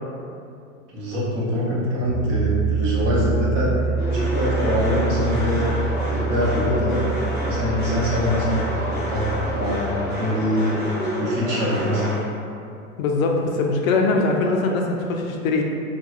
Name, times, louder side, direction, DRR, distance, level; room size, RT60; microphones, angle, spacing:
voice 1, 0.9-3.7 4.1-5.7 6.1-7.0 7.5-10.8 11.2-12.0, left 1 dB, 35° right, -6 dB, 0.9 m, -24 dB
Piano, 2.0-9.7, right 4 dB, 20° right, 0.3 m, -26 dB
sound 1, 4.0-12.2, equal, 5° left, 1.3 m, -29 dB
voice 2, 13.0-15.6, left 3 dB, 65° left, 2 dB, 0.5 m, -21 dB
3.2 x 2.5 x 2.5 m, 2.5 s
hypercardioid pair, 110°, 44 cm